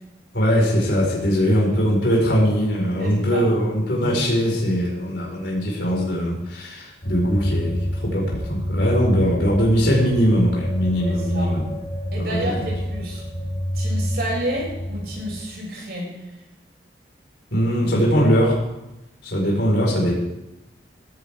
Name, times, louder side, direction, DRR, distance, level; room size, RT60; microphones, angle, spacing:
voice 1, 0.3-11.7 12.2-12.5 17.5-18.6 19.2-20.1, equal, 85° left, -3 dB, 4.8 m, -21 dB
voice 2, 3.0-3.5 11.1-11.5 12.1-13.2 13.7-16.1, right 1 dB, 60° right, -2 dB, 6.8 m, -30 dB
sound 1, 7.0-15.4, equal, 45° left, 2.6 m, -27 dB
17.5 x 14.0 x 3.6 m, 0.94 s
head